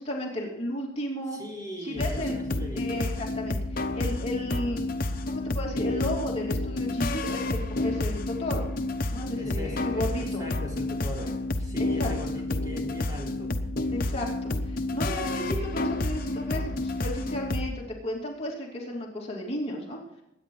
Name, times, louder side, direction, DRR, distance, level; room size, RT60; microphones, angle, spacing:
voice 1, 0.0-1.4 1.8-2.4 2.7-3.6 3.9-4.9 5.3-8.7 9.1-10.4 11.2-11.3 11.8-12.1 13.9-20.0, left 1 dB, 30° left, -3 dB, 2.8 m, -33 dB
voice 2, 1.3-3.1 9.3-13.6, left 1 dB, 20° right, -2 dB, 4.1 m, -40 dB
sound 1, 2.0-17.7, left 2 dB, 45° left, 1.1 m, -30 dB
22.0 x 9.8 x 3.9 m, 0.85 s
head